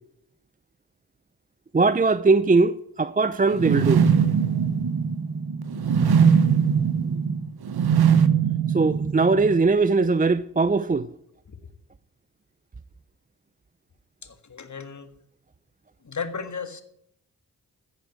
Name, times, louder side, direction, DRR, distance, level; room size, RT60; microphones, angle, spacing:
voice 1, 1.7-4.0 8.7-11.1, right 3 dB, 20° right, 0.6 m, -20 dB
sound 1, 3.5-9.6, right 7 dB, 75° right, 1.0 m, -21 dB
voice 2, 14.2-15.1 16.0-16.8, left 5 dB, 50° left, 1.7 m, -35 dB
15.0 x 5.1 x 8.5 m
cardioid pair, 40°, 38 cm